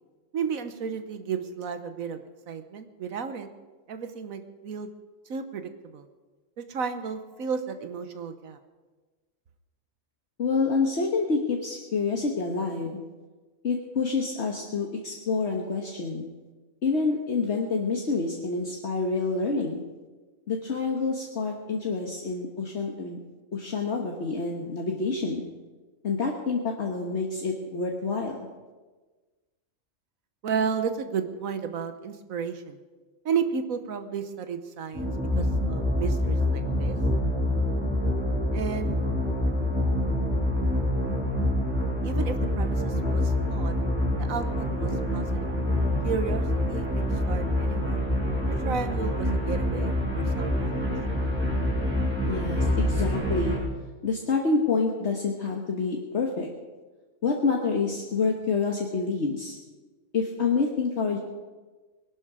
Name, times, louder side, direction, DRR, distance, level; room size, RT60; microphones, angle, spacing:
voice 1, 0.3-2.2 2.5-3.5 3.9-4.9 5.3-6.0 6.6-8.6 30.4-32.8 33.2-37.0 38.5-39.0 42.0-43.8 44.2-45.5 46.0-48.0 48.5-50.8, right 6 dB, 90° right, 9 dB, 1.5 m, -33 dB
voice 2, 10.4-13.0 13.6-16.3 16.8-19.8 20.5-23.2 23.5-25.5 26.0-28.4 52.2-53.6 54.0-56.5 57.2-59.6 60.1-61.2, left 4 dB, 55° left, 0 dB, 1.6 m, -27 dB
sound 1, 34.9-53.6, left 1 dB, 10° right, 5.3 m, -26 dB
20.5 x 11.5 x 5.0 m, 1.3 s
omnidirectional pair, 1.4 m